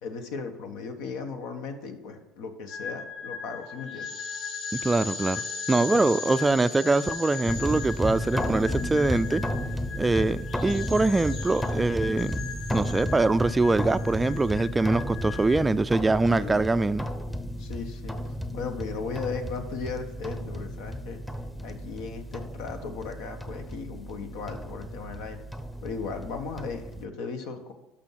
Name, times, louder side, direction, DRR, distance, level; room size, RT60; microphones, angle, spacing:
voice 1, 0.0-4.1 5.7-6.2 16.3-16.7 17.6-18.2 18.5-21.2 21.6-25.5 25.8-27.7, left 5 dB, 80° left, 1.4 m, -36 dB
sound 1, 2.7-15.6, left 5 dB, 55° left, 4.4 m, -38 dB
voice 2, 4.7-5.4 5.7-9.4 10.0-12.4 12.7-17.1, right 3 dB, 15° right, 0.4 m, -23 dB
sound 2, 7.4-27.0, equal, 10° left, 0.8 m, -33 dB
12.0 x 6.1 x 5.9 m
supercardioid pair, 110°, 0 cm